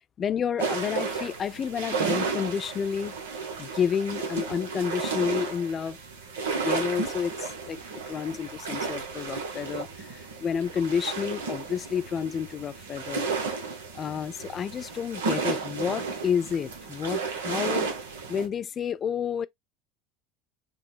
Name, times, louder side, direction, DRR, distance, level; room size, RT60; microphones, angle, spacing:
voice 1, 0.2-3.2 3.6-6.0 6.6-13.3 13.9-17.9 18.3-19.5, left 7 dB, 35° left, 0.3 m, -30 dB
sound 1, 0.6-18.5, right 4 dB, 75° right, 0.7 m, -33 dB
5.0 x 2.0 x 2.2 m
figure-of-eight pair, 70°, 0 cm